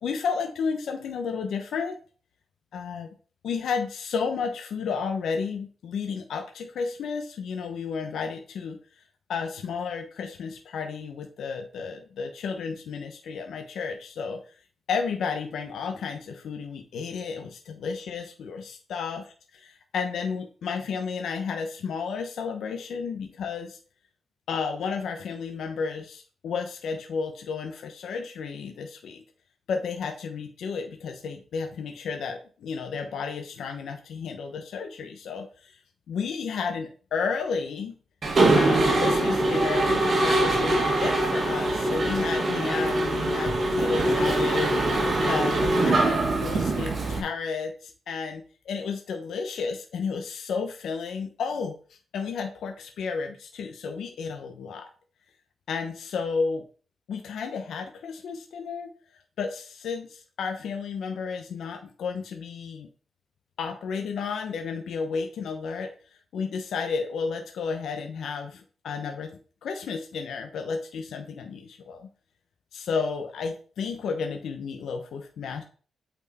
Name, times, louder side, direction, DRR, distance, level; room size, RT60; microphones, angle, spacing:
voice 1, 0.0-2.0 2.7-3.1 3.4-9.0 9.3-14.4 14.9-23.8 24.5-29.2 29.7-35.8 36.1-38.0 38.5-44.7 45.3-54.9 55.7-56.6 57.1-58.9 59.4-62.9 63.6-69.3 69.6-72.1 72.7-75.6, left 5 dB, 75° left, 4 dB, 0.8 m, -32 dB
Mechanisms, 38.2-47.2, right 2 dB, 40° right, 1.9 m, -23 dB
8.2 x 4.5 x 4.2 m, 0.40 s
cardioid pair, 130°, 0 cm